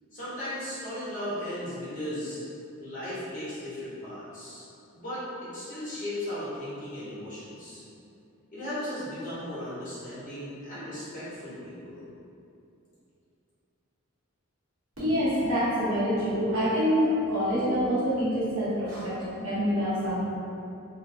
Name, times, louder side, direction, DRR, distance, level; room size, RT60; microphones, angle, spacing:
voice 1, 0.1-2.4 2.8-4.6 4.9-5.3 5.5-7.8 8.5-12.0, left 1 dB, 40° left, -12 dB, 0.9 m, -36 dB
voice 2, 15.0-20.2, equal, 85° right, -11 dB, 1.0 m, -26 dB
2.6 x 2.1 x 2.6 m, 2.6 s
head